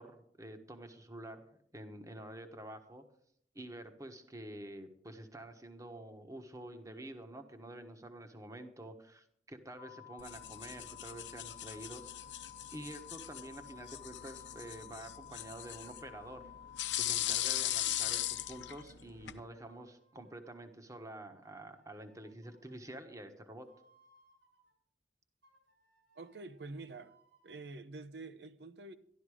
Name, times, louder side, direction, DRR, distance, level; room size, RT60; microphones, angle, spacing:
voice 1, 0.0-1.4 1.7-3.0 3.5-12.1 12.7-16.5 17.0-23.7, right 1 dB, 20° right, 1.2 m, -48 dB
sound 1, 9.8-18.9, left 11 dB, 30° left, 0.5 m, -53 dB
sound 2, 10.2-19.4, left 13 dB, 85° left, 0.8 m, -39 dB
sound 3, 11.8-12.8 13.3-16.8 17.4-19.3 19.7-20.8 21.4-24.7 25.4-27.6, right 2 dB, 85° right, 5.9 m, -72 dB
voice 2, 26.2-27.1 27.4-28.9, right 3 dB, 65° right, 0.9 m, -47 dB
13.0 x 11.5 x 4.9 m
head